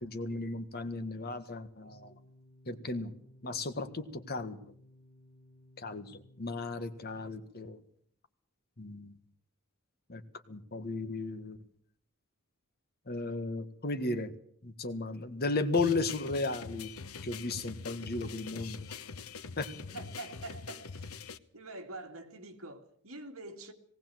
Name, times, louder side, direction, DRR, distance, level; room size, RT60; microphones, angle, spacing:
voice 1, 0.0-2.1 2.7-3.1 3.4-4.6 5.8-7.8 8.8-9.1 10.1-10.2 10.5-11.6 13.1-14.3 14.6-16.9 17.2-19.0 19.6-19.7, left 3 dB, 45° left, 1.6 m, -35 dB
sound 1, 1.9-7.3, left 1 dB, 25° left, 7.6 m, -59 dB
sound 2, 15.7-21.4, left 5 dB, 85° left, 1.0 m, -44 dB
voice 2, 19.9-21.1 21.5-23.7, right 2 dB, 65° right, 2.5 m, -45 dB
19.0 x 18.0 x 7.8 m
head